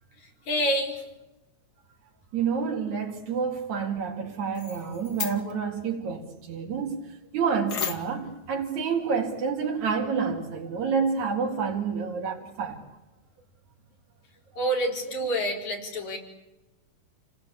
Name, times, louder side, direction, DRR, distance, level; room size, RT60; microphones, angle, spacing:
voice 1, 0.5-1.0 14.6-16.2, right 1 dB, 70° left, 1 dB, 5.8 m, -27 dB
voice 2, 2.3-7.1 7.3-12.8, right 5 dB, 75° right, -1 dB, 3.8 m, -28 dB
sound 1, 4.5-5.6 7.7-8.3, left 6 dB, 40° left, 1.7 m, -34 dB
29.5 x 19.0 x 8.5 m, 1.0 s
omnidirectional pair, 3.3 m